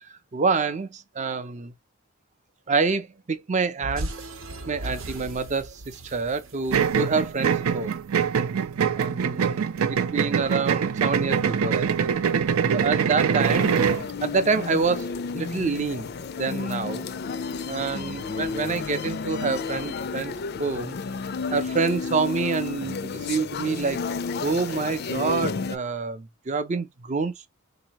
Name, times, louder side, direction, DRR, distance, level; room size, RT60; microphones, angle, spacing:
voice 1, 0.1-1.7 2.7-4.1 4.7-7.9 9.0-12.1 12.7-13.7 14.2-16.1 16.4-17.1 17.7-20.3 20.6-21.0 21.5-24.0 24.4-27.5, right 4 dB, 35° right, 0.5 m, -27 dB
sound 1, 3.8-8.2, right 1 dB, 65° right, 0.8 m, -37 dB
sound 2, 6.7-14.1, right 7 dB, 90° right, 0.4 m, -24 dB
sound 3, 13.4-25.8, left 4 dB, 50° left, 0.4 m, -32 dB
3.8 x 2.8 x 2.8 m
head